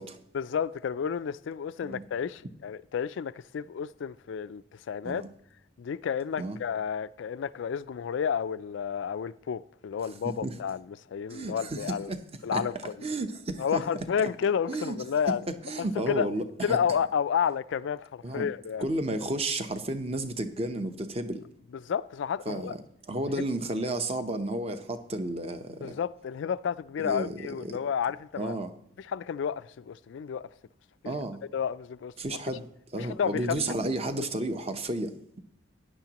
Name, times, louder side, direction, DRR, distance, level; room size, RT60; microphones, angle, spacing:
voice 1, 0.3-5.2 5.8-12.1 12.4-12.9 13.6-15.4 15.8-16.3 16.6-18.9 21.9-22.7 23.4-23.5 25.8-28.6 29.0-30.5 31.0-31.1 31.5-32.4 33.0-33.9 34.2-34.3, left 7 dB, 70° left, 0.3 m, -31 dB
voice 2, 10.2-10.6 11.3-12.2 12.5-12.7 13.0-13.8 14.7-15.0 15.3-15.4 15.6-16.8 18.2-18.5 18.8-21.4 22.5-22.8 23.1-26.0 27.0-27.8 28.4-28.7 31.0-31.4 32.2-32.6 32.9-35.4, right 1 dB, 30° right, 0.8 m, -32 dB
16.0 x 10.0 x 2.9 m
head